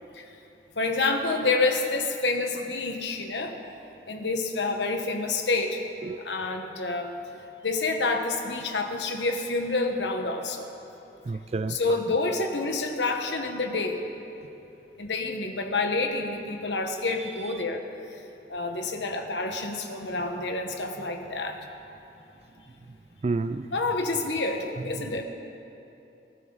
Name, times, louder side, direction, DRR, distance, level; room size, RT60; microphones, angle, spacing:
voice 1, 0.7-3.6 4.1-5.8 6.2-7.1 7.6-10.7 11.7-14.0 15.0-17.8 18.5-21.6 23.7-25.2, left 3 dB, 80° left, 4 dB, 1.4 m, -28 dB
voice 2, 11.3-11.8 23.2-23.7, right 3 dB, 35° right, 11 dB, 0.3 m, -29 dB
23.5 x 12.5 x 4.0 m, 2.9 s
head